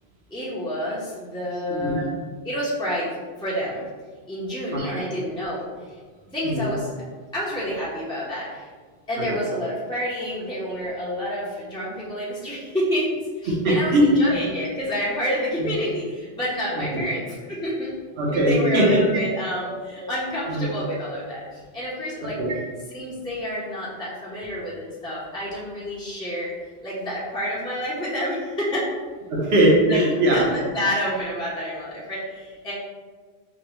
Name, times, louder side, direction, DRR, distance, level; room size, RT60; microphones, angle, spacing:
voice 1, 0.3-2.1 2.4-3.1 3.4-3.8 4.3-6.0 6.3-6.9 7.3-8.7 9.1-18.0 18.3-22.4 22.9-26.5 26.8-28.9 29.9-30.0 30.3-32.7, equal, 5° left, -8 dB, 0.5 m, -29 dB
voice 2, 1.7-2.1 4.7-5.0 6.4-6.7 9.2-9.4 13.5-14.2 15.6-15.7 16.9-17.0 18.2-19.0 19.7-19.8 20.0-20.1 20.5-20.7 22.4-22.6 29.3-30.5, right 1 dB, 75° right, -3 dB, 1.1 m, -20 dB
5.1 x 2.1 x 3.0 m, 1.5 s
omnidirectional pair, 1.1 m